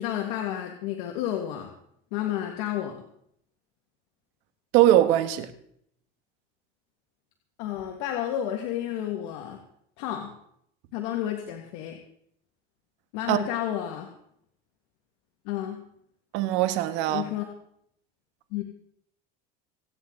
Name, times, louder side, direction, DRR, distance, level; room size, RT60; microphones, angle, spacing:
voice 1, 0.0-1.7 2.1-3.0 7.6-9.6 10.0-10.3 10.9-12.0 13.1-14.1 15.5-15.8 17.1-17.5 18.5-18.6, left 11 dB, 80° left, 2.0 m, -31 dB
voice 2, 4.7-5.5 13.3-13.4 16.3-17.3, right 13 dB, 70° right, 1.6 m, -21 dB
26.5 x 9.7 x 3.9 m
cardioid pair, 140°, 20 cm